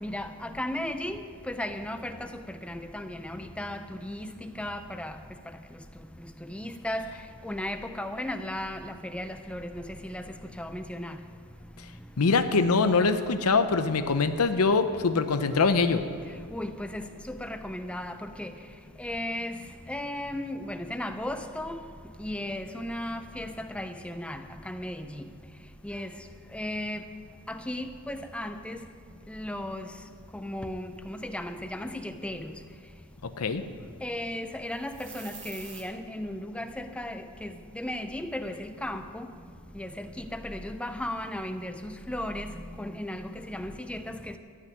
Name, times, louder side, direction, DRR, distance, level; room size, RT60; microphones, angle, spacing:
voice 1, 0.0-5.2 6.4-7.1 7.4-10.2 10.6-11.2 16.5-18.5 19.0-21.8 22.2-25.2 25.8-26.1 26.5-27.0 27.5-28.8 29.3-29.9 30.3-32.5 34.0-39.3 39.7-44.4, left 1 dB, 5° left, 0.5 m, -35 dB
voice 2, 12.2-16.0 33.4-33.6, left 4 dB, 75° left, 0.7 m, -23 dB
sound 1, 34.7-35.8, right 6 dB, 55° right, 1.8 m, -45 dB
13.5 x 6.1 x 9.3 m
head